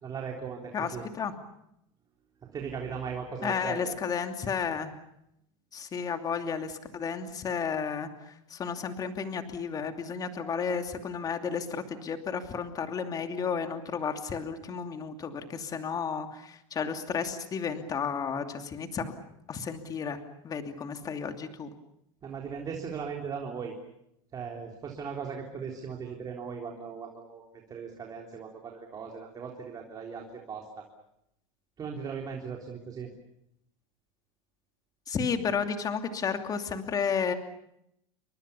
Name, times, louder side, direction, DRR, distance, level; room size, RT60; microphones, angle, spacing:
voice 1, 0.0-1.0 2.4-3.9 22.2-23.7 24.3-30.9 31.8-33.1, right 6 dB, 20° right, 1 dB, 3.7 m, -38 dB
voice 2, 0.7-1.3 3.4-4.9 5.7-19.1 19.5-20.2 20.4-21.7 35.1-37.3, left 6 dB, 20° left, 6 dB, 2.7 m, -32 dB
29.5 x 24.5 x 7.0 m, 0.79 s
supercardioid pair, 150°, 17 cm